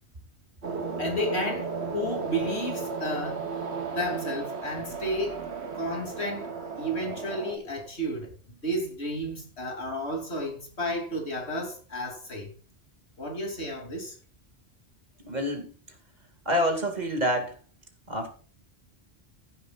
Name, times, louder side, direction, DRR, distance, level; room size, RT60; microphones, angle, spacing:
sound 1, 0.6-7.6, right 5 dB, 85° right, 2.0 m, -34 dB
voice 1, 1.0-3.4 3.9-5.4 5.7-12.5 13.2-14.1, equal, 80° left, 3.2 m, -32 dB
voice 2, 15.2-15.7 16.5-17.5 18.1-18.4, equal, 40° right, 2.3 m, -27 dB
15.0 x 9.9 x 2.4 m
omnidirectional pair, 1.1 m